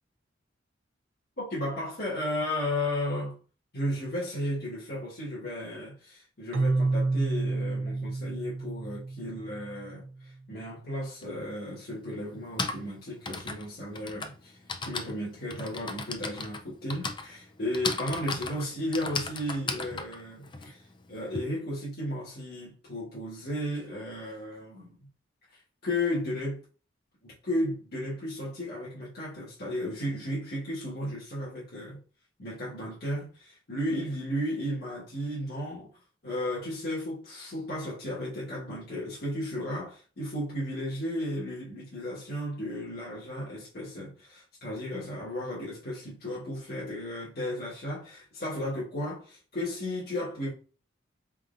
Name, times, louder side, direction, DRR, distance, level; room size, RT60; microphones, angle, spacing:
voice 1, 1.4-3.4 3.7-14.6 14.8-20.8 21.1-25.0 25.8-26.6 27.2-32.0 32.4-35.9 36.2-50.5, left 1 dB, 55° left, 1.5 m, -34 dB
Keyboard (musical), 6.5-10.2, right 3 dB, 80° right, 0.7 m, -30 dB
Typing, 11.2-11.3 12.3-21.4, left 4 dB, 25° left, 0.4 m, -36 dB
4.2 x 3.7 x 2.5 m
head